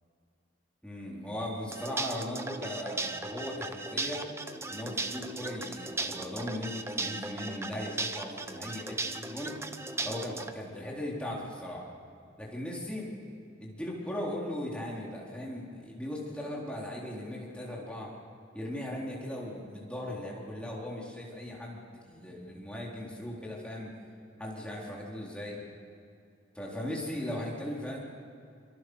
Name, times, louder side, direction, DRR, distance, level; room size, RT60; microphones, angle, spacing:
voice 1, 0.8-4.3 4.7-9.6 10.0-11.9 12.4-13.1 13.6-18.1 18.5-23.9 24.4-25.6 26.6-28.0, left 1 dB, 5° left, -4 dB, 4.0 m, -38 dB
sound 1, 1.7-10.5, right 3 dB, 15° right, 0.8 m, -37 dB
27.0 x 25.5 x 6.4 m, 2.5 s
head